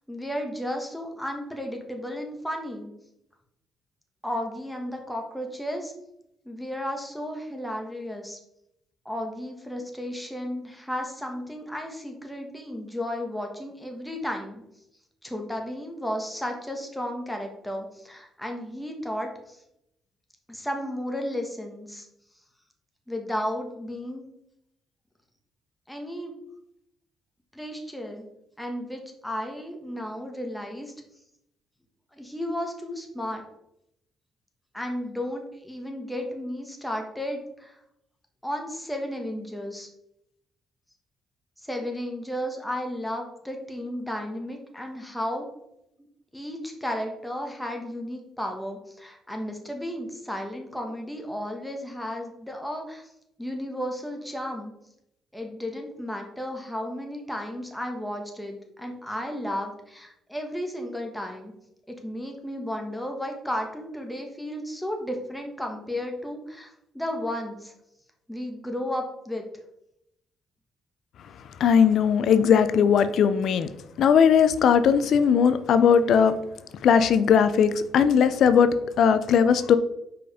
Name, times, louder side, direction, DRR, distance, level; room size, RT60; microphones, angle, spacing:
voice 1, 0.1-2.9 4.2-5.9 6.4-8.4 9.0-14.6 15.2-19.6 20.5-22.1 23.1-24.2 25.9-26.4 27.5-28.2 28.6-30.9 32.1-33.4 34.7-37.8 38.4-39.9 41.6-45.4 46.3-53.0 53.4-54.7 55.3-61.5 62.0-67.7 68.3-69.4, left 1 dB, 5° left, 2 dB, 1.3 m, -33 dB
voice 2, 71.6-73.7 74.0-76.3 76.8-79.8, left 7 dB, 70° left, 12 dB, 0.4 m, -19 dB
5.0 x 4.7 x 4.9 m, 0.80 s
cardioid pair, 90°, 0 cm